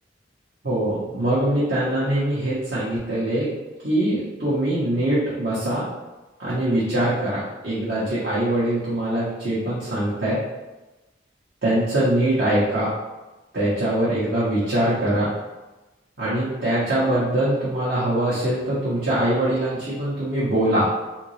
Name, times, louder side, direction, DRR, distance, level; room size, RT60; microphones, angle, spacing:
voice 1, 0.6-3.5 3.8-5.8 6.4-10.4 11.6-12.9 13.5-15.3 16.2-20.9, right 1 dB, 60° right, -11 dB, 1.1 m, -23 dB
3.5 x 2.8 x 3.1 m, 1.1 s
head